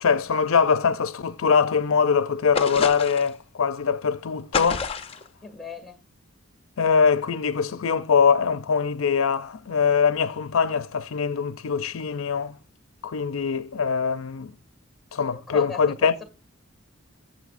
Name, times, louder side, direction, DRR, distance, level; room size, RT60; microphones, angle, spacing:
voice 1, 0.0-4.9 6.8-12.6 13.0-14.5 15.1-16.1, left 6 dB, 80° left, 0.5 m, -23 dB
sound 1, 2.6-3.4 4.5-5.3, left 5 dB, 30° left, 0.6 m, -28 dB
voice 2, 5.4-6.0 15.3-16.2, left 5 dB, ahead, 1.9 m, -37 dB
18.5 x 7.5 x 2.5 m
head